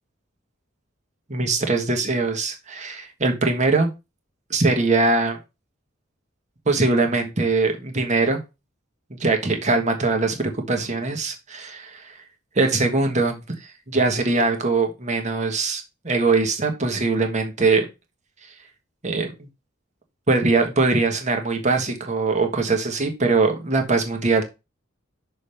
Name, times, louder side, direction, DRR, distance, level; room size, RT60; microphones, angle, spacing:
voice 1, 1.3-3.9 4.5-5.4 6.7-8.4 9.2-12.1 12.5-17.8 19.0-19.5 20.3-24.4, right 3 dB, 35° right, 4 dB, 1.4 m, -22 dB
6.2 x 3.4 x 5.6 m, 0.26 s
head